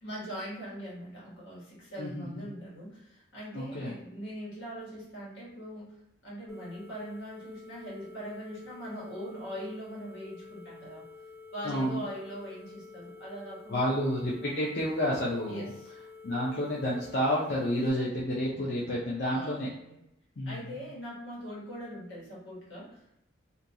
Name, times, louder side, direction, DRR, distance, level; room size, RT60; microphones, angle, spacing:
voice 1, 0.0-5.9 6.2-11.0 11.5-13.9 15.5-15.9 19.3-20.0 20.4-23.2, equal, 80° left, -7 dB, 1.4 m, -41 dB
voice 2, 2.0-2.5 3.5-3.9 11.6-12.0 13.7-15.7 16.2-19.7 20.4-20.6, equal, 55° left, -6 dB, 0.5 m, -30 dB
sound 1, 6.5-17.9, left 4 dB, ahead, 0.5 m, -50 dB
2.6 x 2.2 x 2.7 m, 0.83 s
head